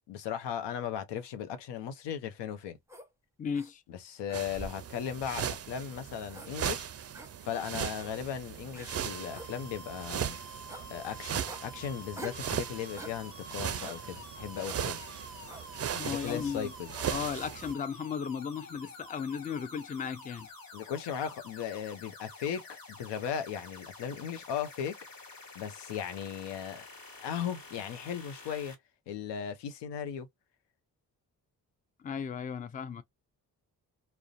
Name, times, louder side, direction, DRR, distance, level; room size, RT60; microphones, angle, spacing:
voice 1, 0.1-2.8 3.9-6.9 7.4-10.4 10.9-15.0 16.0-16.9 20.7-25.0 25.5-26.8 27.2-28.7 29.1-30.3, left 8 dB, 75° left, 0.6 m, -37 dB
sound 1, 2.9-3.1 3.5-3.7 4.3-4.9 5.4-5.6 6.3-6.5 7.1-7.3 8.0-8.1 8.7-8.9 9.3-9.5 10.0-10.3 10.7-10.9 11.4-11.6 12.2-12.5 13.0-13.2 13.8-14.0 14.6-14.8 15.5-15.7 16.2-16.5 16.9-17.1, right 1 dB, 5° right, 0.7 m, -45 dB
voice 2, 3.4-3.8 15.9-16.7 17.1-20.5 32.0-33.0, left 6 dB, 20° left, 0.4 m, -35 dB
sound 2, 4.3-17.7, right 9 dB, 35° right, 0.4 m, -38 dB
sound 3, 8.9-28.7, left 2 dB, 55° left, 1.4 m, -49 dB
2.4 x 2.1 x 2.4 m
supercardioid pair, 45°, 42 cm